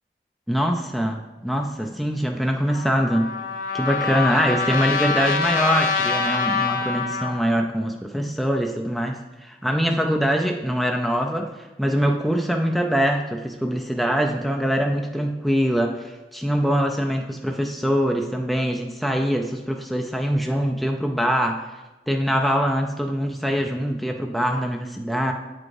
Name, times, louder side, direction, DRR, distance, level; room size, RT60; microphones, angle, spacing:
voice 1, 0.5-3.3 3.7-11.5 11.8-21.7 22.1-25.3, equal, ahead, 2 dB, 0.3 m, -23 dB
Trumpet, 2.7-7.4, left 5 dB, 55° left, 0.7 m, -25 dB
8.6 x 4.7 x 2.6 m, 1.1 s
head